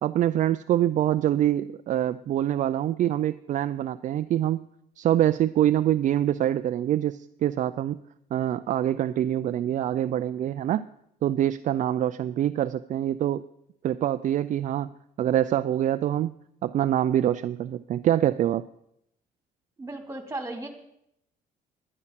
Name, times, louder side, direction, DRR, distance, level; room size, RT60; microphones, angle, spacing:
voice 1, 0.0-4.7 5.0-8.0 8.3-10.8 11.2-13.4 13.8-14.9 15.2-16.3 16.6-18.7, right 11 dB, 50° right, 12 dB, 0.4 m, -25 dB
voice 2, 19.8-20.7, right 2 dB, 15° right, 5 dB, 2.5 m, -35 dB
11.0 x 11.0 x 5.8 m, 0.77 s
cardioid pair, 110°, 17 cm